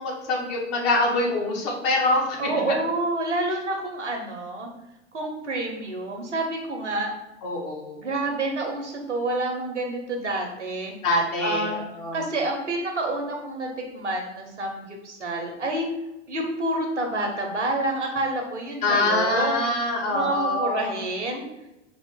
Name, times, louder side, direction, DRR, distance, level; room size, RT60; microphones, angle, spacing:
voice 1, 0.0-2.4 7.4-8.1 11.0-12.2 18.8-21.0, left 2 dB, 45° left, -1 dB, 1.2 m, -24 dB
voice 2, 2.4-4.7 5.1-7.1 8.0-10.9 11.4-11.8 12.1-15.9 16.3-21.5, right 2 dB, 80° right, 1 dB, 0.8 m, -28 dB
4.2 x 2.5 x 3.6 m, 0.95 s
figure-of-eight pair, 85°, 35 cm